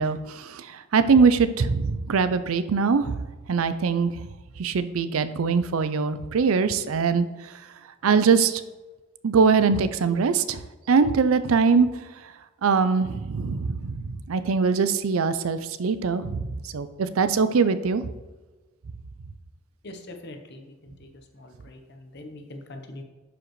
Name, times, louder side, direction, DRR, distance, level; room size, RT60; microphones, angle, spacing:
voice 1, 0.0-3.2 3.5-4.3 4.6-7.3 8.0-8.6 9.2-10.6 10.9-11.9 12.6-16.5 16.7-18.0, right 5 dB, 90° right, 12 dB, 0.5 m, -22 dB
voice 2, 19.8-23.0, left 1 dB, 55° left, 5 dB, 0.9 m, -43 dB
11.0 x 4.9 x 3.1 m, 1.2 s
head